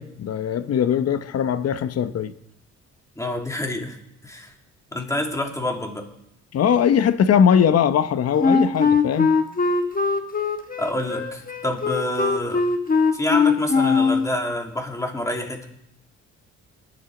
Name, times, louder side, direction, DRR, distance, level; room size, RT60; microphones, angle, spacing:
voice 1, 0.0-2.3 6.5-9.3, left 8 dB, 55° left, 0.9 m, -20 dB
voice 2, 3.2-4.0 4.2-4.5 4.9-6.1 10.8-12.6 13.1-15.7, left 1 dB, 10° left, 2.5 m, -27 dB
Wind instrument woodwind instrument, 8.4-14.3, left 5 dB, 30° left, 1.3 m, -20 dB
20.5 x 11.5 x 3.9 m
cardioid pair, 90°, 30 cm